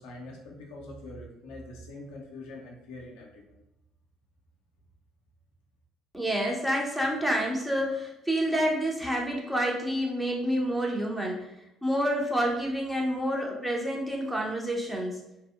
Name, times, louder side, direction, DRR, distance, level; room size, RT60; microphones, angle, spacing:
voice 1, 0.0-3.6, left 1 dB, 70° left, -1 dB, 0.4 m, -44 dB
voice 2, 6.1-11.5 11.8-15.2, equal, 5° right, -1 dB, 0.6 m, -28 dB
2.7 x 2.0 x 2.2 m, 0.85 s
hypercardioid pair, 55°, 0 cm